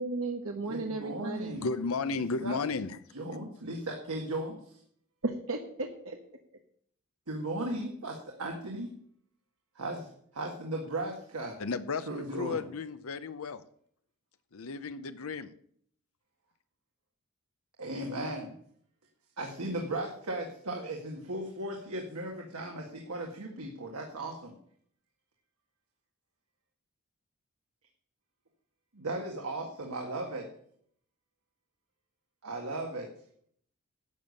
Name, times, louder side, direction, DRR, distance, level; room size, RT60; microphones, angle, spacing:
voice 1, 0.0-1.6 5.2-5.9, right 3 dB, 70° right, 3 dB, 1.2 m, -34 dB
voice 2, 0.7-1.7 2.1-2.2 2.4-2.6 3.1-4.8 7.3-8.9 9.8-11.6 12.1-12.6 17.8-18.5 19.4-24.5 28.9-30.5 32.4-33.1, right 1 dB, 85° right, 0 dB, 1.9 m, -36 dB
voice 3, 1.5-3.0 11.6-13.6 14.5-15.5, left 4 dB, 70° left, 11 dB, 0.7 m, -34 dB
12.0 x 7.0 x 6.5 m, 0.63 s
head